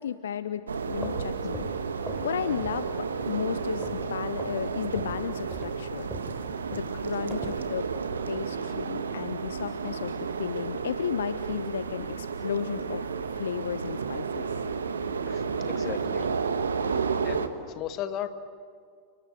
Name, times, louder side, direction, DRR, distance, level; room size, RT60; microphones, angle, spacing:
voice 1, 0.0-1.7 2.2-6.1 6.7-7.9 8.3-14.7, left 8 dB, 65° left, 14 dB, 0.6 m, -34 dB
sound 1, 0.7-17.5, right 5 dB, 70° right, 1.5 m, -32 dB
sound 2, 1.0-2.3 2.6-2.9 3.2-4.1 4.4-4.6 4.9-7.6, equal, ahead, 4.2 m, -41 dB
voice 2, 15.3-16.3 17.2-17.4 17.7-18.3, left 11 dB, 35° left, 10 dB, 1.6 m, -35 dB
29.5 x 20.0 x 9.4 m, 2.1 s
figure-of-eight pair, 90°, 0 cm